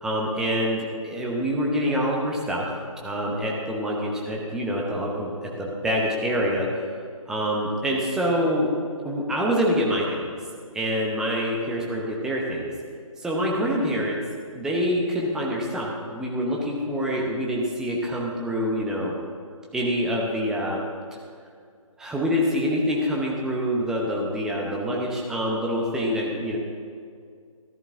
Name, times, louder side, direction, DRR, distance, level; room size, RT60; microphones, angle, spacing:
voice 1, 0.0-2.7 3.0-6.7 7.3-8.7 9.0-10.3 10.7-12.7 13.2-14.2 14.5-19.2 19.7-20.8 22.0-26.6, equal, 5° right, -2 dB, 0.9 m, -26 dB
14.0 x 13.0 x 3.7 m, 2.2 s
figure-of-eight pair, 145°, 18 cm